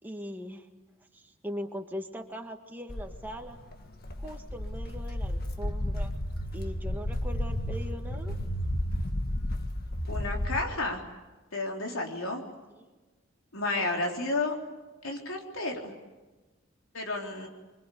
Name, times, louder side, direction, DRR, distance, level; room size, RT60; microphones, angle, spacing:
voice 1, 0.0-0.7 1.1-3.6 4.2-6.1 6.5-8.3, equal, 10° right, 3 dB, 1.9 m, -40 dB
Walk footsteps, 2.9-10.6, left 1 dB, 45° left, 1.8 m, -32 dB
voice 2, 10.1-11.0 11.5-12.4 13.5-14.5 15.0-15.9 16.9-17.5, left 2 dB, 85° left, 1 dB, 3.9 m, -31 dB
25.5 x 24.5 x 8.5 m, 1.2 s
head